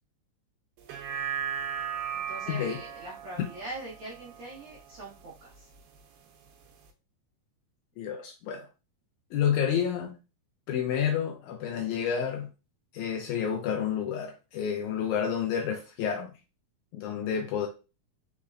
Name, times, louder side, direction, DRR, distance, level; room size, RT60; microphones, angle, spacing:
sound 1, 0.8-5.4 5.8-5.9, right 8 dB, 85° right, 2.5 m, -37 dB
voice 1, 2.1-5.7, right 1 dB, 50° right, 1.6 m, -42 dB
voice 2, 8.0-8.7 9.3-10.1 10.7-12.5 12.9-16.3 16.9-17.7, left 8 dB, 90° left, 1.7 m, -29 dB
5.1 x 4.2 x 2.4 m
omnidirectional pair, 4.1 m